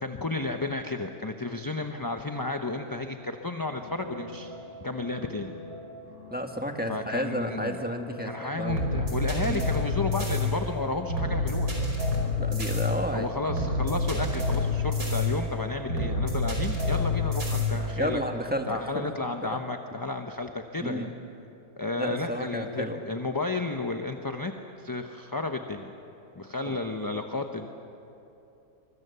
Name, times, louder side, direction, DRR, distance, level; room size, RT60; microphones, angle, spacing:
voice 1, 0.0-4.5 4.8-5.5 6.9-7.8 8.2-11.8 13.1-18.2 18.7-21.1 21.8-24.5 24.8-25.9 26.3-27.7, left 2 dB, 20° left, 5 dB, 0.7 m, -32 dB
sound 1, 3.7-17.9, left 2 dB, 85° right, 5.7 m, -29 dB
voice 2, 6.3-8.8 9.5-9.7 12.4-13.3 18.0-19.1 20.8-21.1 22.0-23.0 26.7-26.8, equal, 5° right, 3 dB, 1.5 m, -32 dB
25.0 x 23.5 x 6.9 m, 2.8 s
omnidirectional pair, 1.6 m